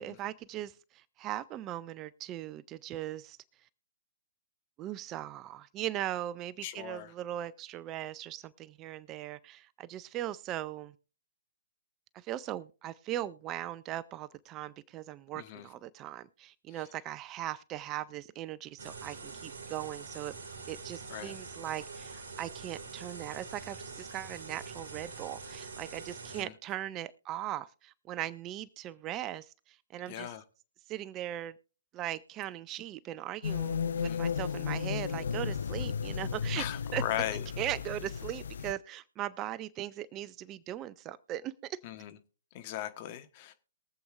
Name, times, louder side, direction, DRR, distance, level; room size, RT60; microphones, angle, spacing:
voice 1, 0.0-3.4 4.8-10.9 12.1-20.3 20.7-30.3 30.9-31.5 31.9-36.6 36.9-37.0 37.6-41.8, right 13 dB, 25° right, 0.4 m, -39 dB
voice 2, 6.6-7.1 15.3-15.7 21.1-21.4 26.3-26.5 30.1-30.4 34.0-34.2 36.6-37.4 41.8-42.2 42.5-43.5, left 12 dB, 40° left, 1.2 m, -38 dB
sound 1, 18.8-26.4, right 4 dB, 60° right, 2.1 m, -45 dB
sound 2, 33.4-38.7, left 7 dB, 65° left, 0.4 m, -34 dB
22.5 x 7.7 x 2.4 m
figure-of-eight pair, 125°, 0 cm